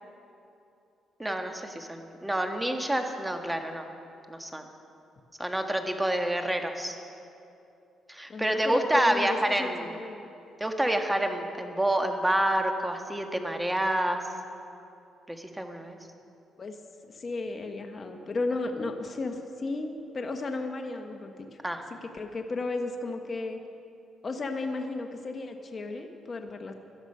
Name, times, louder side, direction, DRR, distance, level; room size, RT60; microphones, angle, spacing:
voice 1, 1.2-3.9 4.3-4.6 5.4-6.9 8.1-10.0 10.6-14.2 15.3-16.0 21.6-21.8, right 1 dB, 10° right, 5 dB, 1.5 m, -28 dB
voice 2, 8.3-10.2 16.6-16.8 17.0-21.5 22.1-23.6 24.2-26.7, left 3 dB, 35° left, 5 dB, 1.1 m, -34 dB
17.5 x 12.5 x 5.5 m, 2.7 s
cardioid pair, 90°, 0 cm